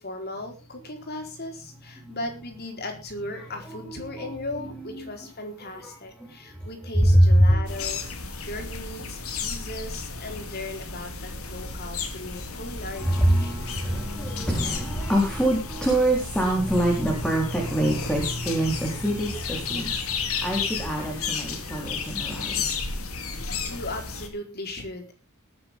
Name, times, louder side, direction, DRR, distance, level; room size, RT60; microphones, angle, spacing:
voice 1, 0.0-13.7 21.7-21.9 23.4-25.1, left 2 dB, 45° left, 4 dB, 4.3 m, -37 dB
voice 2, 3.7-4.3 4.6-5.1 5.8-5.9 6.2-6.3 7.0-7.6 13.0-22.7, right 1 dB, 5° left, -1 dB, 3.9 m, -24 dB
sound 1, 7.7-24.3, left 5 dB, 75° left, 3.1 m, -33 dB
20.5 x 9.8 x 3.7 m, 0.31 s
head